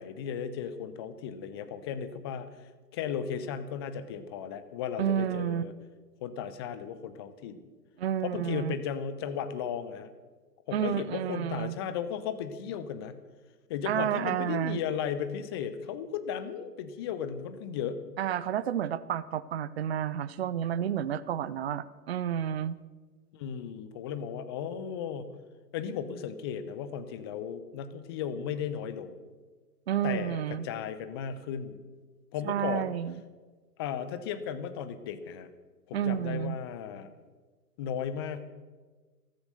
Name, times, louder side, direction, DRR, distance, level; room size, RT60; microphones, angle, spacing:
voice 1, 0.0-5.7 6.2-7.7 8.2-10.1 10.7-13.2 13.7-18.0 23.3-25.3 25.7-29.2 30.0-31.8 32.3-33.0 33.8-35.5 35.9-37.1 37.8-38.4, left 8 dB, 15° left, 12 dB, 0.6 m, -35 dB
voice 2, 5.0-5.6 8.0-8.7 10.7-11.8 13.9-14.8 18.2-22.8 29.9-30.7 32.4-33.2 35.9-36.6, right 9 dB, 40° right, 16 dB, 0.7 m, -30 dB
14.5 x 14.0 x 6.7 m, 1.3 s
figure-of-eight pair, 120°, 48 cm